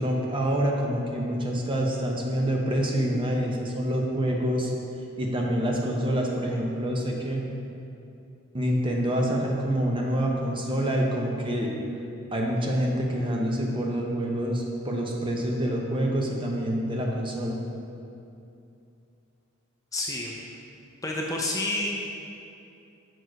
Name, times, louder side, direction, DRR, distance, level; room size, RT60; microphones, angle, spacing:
voice 1, 0.0-4.7 5.2-7.4 8.5-11.7 12.3-17.6, equal, 25° right, 0 dB, 0.7 m, -26 dB
voice 2, 19.9-20.5 21.0-22.0, left 2 dB, 15° left, -2 dB, 0.4 m, -29 dB
6.3 x 4.6 x 4.6 m, 2.6 s
head